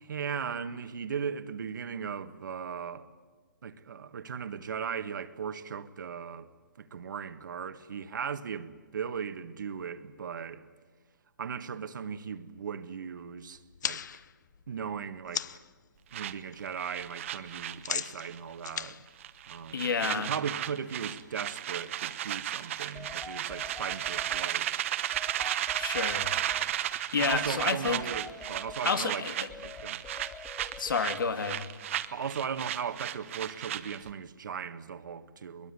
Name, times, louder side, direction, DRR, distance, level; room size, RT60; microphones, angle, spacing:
voice 1, 0.0-3.1 3.6-6.5 6.8-10.6 11.4-14.2 14.7-15.5 16.1-19.0 19.5-24.7 27.2-29.3 29.6-30.0 32.1-35.7, right 7 dB, 70° right, 1.6 m, -37 dB
sound 1, 13.6-15.7 16.1-16.6 16.8-20.1, left 8 dB, 60° left, 0.8 m, -38 dB
sound 2, 16.1-18.4 18.6-18.9 19.2-34.1, right 12 dB, 40° right, 1.1 m, -34 dB
voice 2, 19.7-20.3 25.8-26.3 27.1-28.0 28.8-29.5 30.8-31.7, left 5 dB, 85° left, 2.6 m, -30 dB
sound 3, 22.9-24.5 25.1-26.6 27.3-28.8 29.5-31.0, left 3 dB, 5° left, 0.7 m, -45 dB
22.5 x 22.0 x 9.7 m
hypercardioid pair, 165°, 11 cm